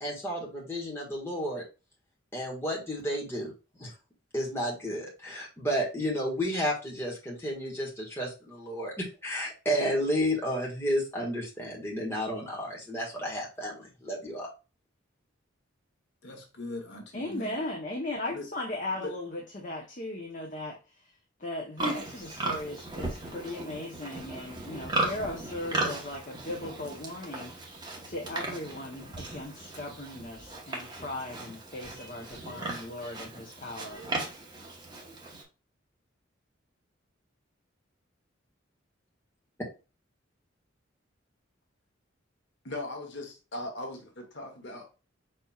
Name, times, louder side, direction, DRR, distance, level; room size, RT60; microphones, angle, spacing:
voice 1, 0.0-1.6 2.3-3.5 3.8-3.9 4.3-14.5, equal, 10° left, 1.5 m, -32 dB
voice 2, 16.2-17.5 18.3-18.5 18.9-19.1 42.6-44.9, left 2 dB, 60° left, 1.1 m, -39 dB
voice 3, 17.1-21.1 21.4-27.7 28.0-34.0, left 1 dB, 40° left, 0.8 m, -38 dB
Livestock farm animals working animals, 21.8-35.4, right 2 dB, 20° right, 1.0 m, -36 dB
5.1 x 4.3 x 2.3 m
head